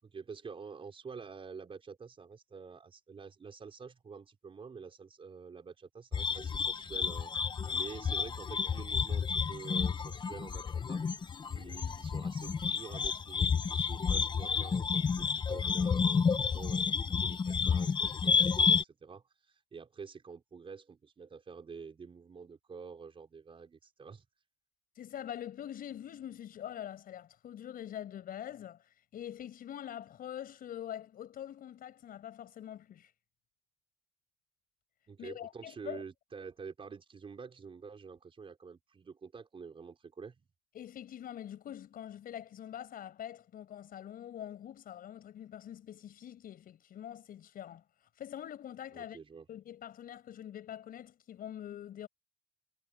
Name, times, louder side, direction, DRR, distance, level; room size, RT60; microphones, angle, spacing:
voice 1, 0.0-7.3 7.7-11.0 11.5-16.9 17.2-24.2 35.1-40.4 48.9-49.4, right 5 dB, 30° right, 5.0 m, -48 dB
sound 1, 6.1-18.8, left 6 dB, 25° left, 0.7 m, -30 dB
voice 2, 24.9-33.1 35.2-36.0 40.7-49.2 49.5-52.1, left 10 dB, 60° left, 6.5 m, -44 dB
cardioid pair, 110°, 17 cm